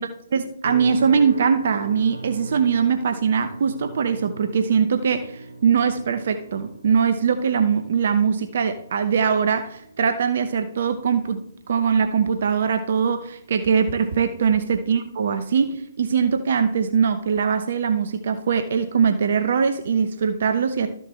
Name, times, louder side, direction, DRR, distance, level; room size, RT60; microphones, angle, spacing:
voice 1, 0.3-20.9, right 6 dB, 55° right, 9 dB, 0.8 m, -21 dB
sound 1, 0.6-15.8 16.2-16.6 17.1-17.3, right 3 dB, 85° right, 1.5 m, -41 dB
13.5 x 6.6 x 3.3 m, 0.69 s
figure-of-eight pair, 125°, 0 cm